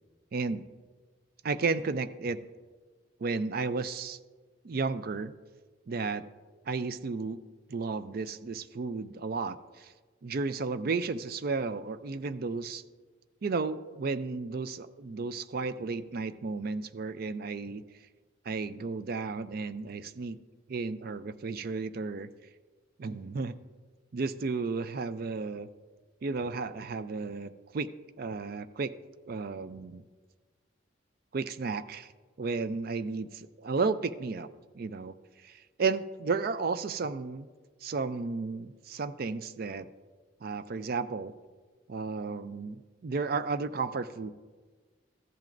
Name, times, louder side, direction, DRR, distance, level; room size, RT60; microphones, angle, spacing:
voice 1, 0.3-0.6 1.4-2.4 3.2-4.2 4.6-5.3 5.9-6.3 6.7-7.4 7.7-9.9 10.2-12.8 13.4-17.8 18.5-20.4 20.7-22.3 23.0-23.6 24.1-25.7 26.2-27.9 28.2-28.9 29.3-30.0 31.3-32.1 32.4-34.5 34.7-35.1 35.4-37.5 37.8-39.9 40.4-41.3 41.9-44.3, right 4 dB, 50° right, 13 dB, 0.4 m, -33 dB
14.5 x 10.5 x 2.6 m, 1.4 s
head